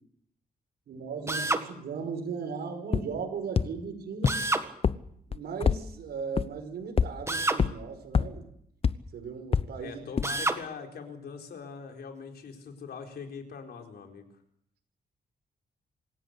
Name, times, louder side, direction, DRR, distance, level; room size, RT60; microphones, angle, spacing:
voice 1, 0.9-4.4 5.3-8.4 9.1-10.0, right 5 dB, 85° right, 5 dB, 5.4 m, -37 dB
Drill, 1.3-1.7 4.3-4.7 7.3-7.6 10.2-10.6, right 2 dB, 15° right, 1.7 m, -28 dB
sound 1, 2.9-3.0 3.6-3.7 4.2-4.3 4.8-4.9 5.3-5.8 6.4-6.5 7.0-7.1 7.6-7.7 8.1-8.2 8.8-8.9 9.5-9.6 10.2-10.3, left 6 dB, 35° left, 0.8 m, -23 dB
voice 2, 9.8-14.3, left 5 dB, 75° left, 3 dB, 4.3 m, -42 dB
26.5 x 16.5 x 8.4 m, 0.71 s
wide cardioid pair, 130°, 17 cm